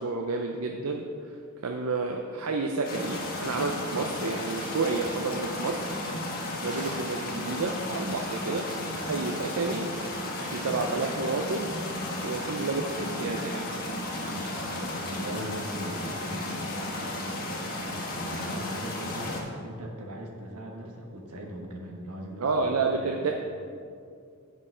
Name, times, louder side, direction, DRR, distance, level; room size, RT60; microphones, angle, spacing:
voice 1, 0.0-1.4 1.6-6.0 6.6-9.9 10.5-11.7 12.2-13.7 22.4-23.3, right 3 dB, 70° right, 3 dB, 0.5 m, -30 dB
sound 1, 2.8-19.4, left 1 dB, 45° left, 1.4 m, -34 dB
Drawer open or close, 6.0-7.2 9.8-10.8, right 1 dB, 40° right, 1.5 m, -47 dB
voice 2, 14.3-16.6 17.0-23.3, equal, 85° right, 0 dB, 1.4 m, -40 dB
8.5 x 5.3 x 5.6 m, 2.3 s
head